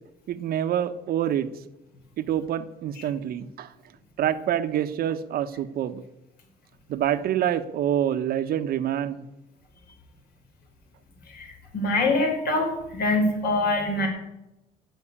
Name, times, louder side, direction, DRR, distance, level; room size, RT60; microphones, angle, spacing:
voice 1, 0.3-1.5 2.2-3.7 4.2-6.0 6.9-9.3, right 10 dB, 65° right, 11 dB, 1.0 m, -26 dB
voice 2, 11.3-14.1, left 2 dB, 65° left, 1 dB, 5.5 m, -24 dB
15.0 x 6.4 x 9.8 m, 0.93 s
cardioid pair, 110°, 17 cm